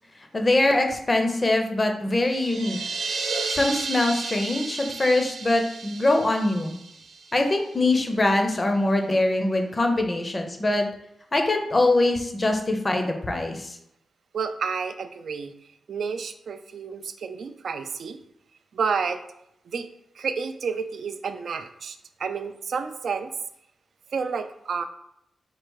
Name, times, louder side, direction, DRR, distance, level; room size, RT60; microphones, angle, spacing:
voice 1, 0.3-2.8 3.5-6.8 7.3-10.9 11.3-13.8, left 2 dB, 20° left, 4 dB, 0.5 m, -23 dB
sound 1, 2.2-7.8, right 4 dB, 75° right, 0.9 m, -33 dB
voice 2, 14.3-15.6 15.9-18.2 18.7-19.2 19.6-19.9 20.1-23.3 24.1-24.8, right 5 dB, 60° right, 9 dB, 0.3 m, -30 dB
4.5 x 2.4 x 4.6 m, 0.78 s
wide cardioid pair, 170°, 0 cm